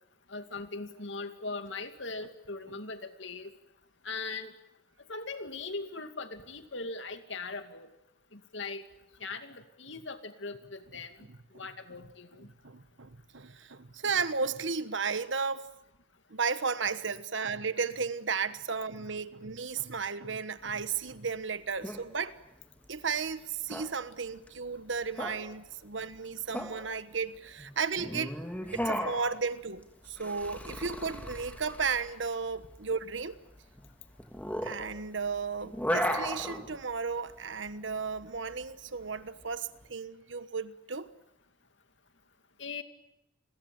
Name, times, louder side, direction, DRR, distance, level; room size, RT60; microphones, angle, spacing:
voice 1, 0.3-3.5 4.0-4.5 5.1-7.9 8.3-8.8 9.2-11.1 11.5-12.5 42.6-42.8, left 3 dB, 65° left, 2.4 m, -40 dB
voice 2, 12.4-15.7 16.3-22.3 22.9-28.4 28.7-33.4 34.6-41.1, right 5 dB, 70° right, 1.3 m, -34 dB
sound 1, 20.6-39.8, equal, 10° left, 3.0 m, -37 dB
30.0 x 22.0 x 8.9 m
head